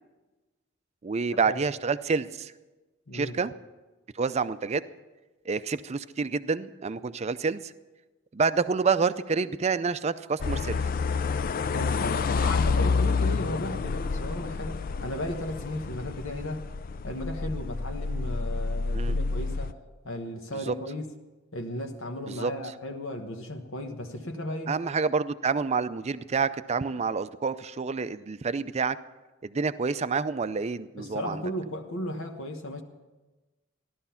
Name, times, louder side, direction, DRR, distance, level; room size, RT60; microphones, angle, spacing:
voice 1, 1.0-2.5 3.1-3.5 4.2-4.8 5.5-7.7 8.3-10.8 18.9-19.2 20.5-20.7 22.3-22.5 24.7-29.0 29.4-31.4, right 5 dB, 30° right, 14 dB, 0.5 m, -28 dB
voice 2, 3.1-3.4 11.7-16.6 17.0-19.7 20.0-21.1 21.5-24.7 31.0-32.8, left 1 dB, 75° left, 4 dB, 1.2 m, -35 dB
sound 1, 10.4-19.7, left 4 dB, 45° left, 0.4 m, -29 dB
15.5 x 12.0 x 5.7 m, 1.2 s
head